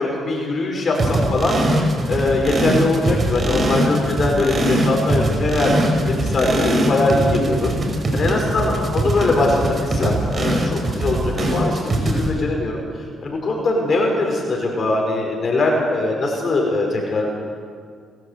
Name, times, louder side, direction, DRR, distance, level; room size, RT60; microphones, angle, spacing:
voice 1, 0.0-1.6 2.1-7.7 8.1-12.8 13.2-17.3, left 2 dB, 45° left, 0 dB, 5.1 m, -21 dB
sound 1, 0.9-12.3, right 1 dB, 40° right, 4.9 m, -21 dB
29.5 x 13.5 x 8.2 m, 2.1 s
cardioid pair, 90°, 0 cm